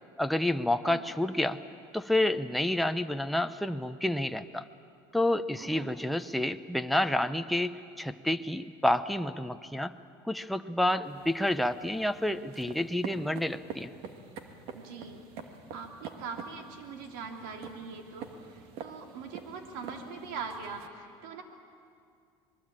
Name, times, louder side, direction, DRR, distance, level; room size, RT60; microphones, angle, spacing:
voice 1, 0.2-1.6 1.9-4.7 5.1-9.9 10.2-13.9, left 1 dB, ahead, 8 dB, 0.7 m, -29 dB
voice 2, 5.6-6.0 14.7-15.2 15.7-21.4, right 5 dB, 85° right, 4 dB, 3.2 m, -42 dB
sound 1, 11.0-20.9, right 6 dB, 65° right, 2.1 m, -46 dB
25.5 x 21.0 x 8.9 m, 2.4 s
supercardioid pair, 120°, 10 cm